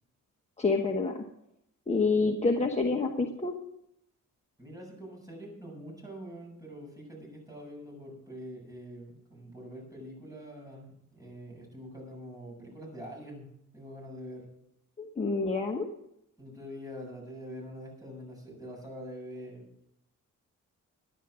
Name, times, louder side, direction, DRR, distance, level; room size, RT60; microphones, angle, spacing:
voice 1, 0.6-1.2 1.9-3.5 15.0-15.9, left 3 dB, 20° left, 3 dB, 1.2 m, -27 dB
voice 2, 4.6-13.5 13.7-14.5 16.4-19.7, equal, 10° right, -1 dB, 7.3 m, -44 dB
12.5 x 10.5 x 6.2 m, 0.78 s
cardioid pair, 110°, 31 cm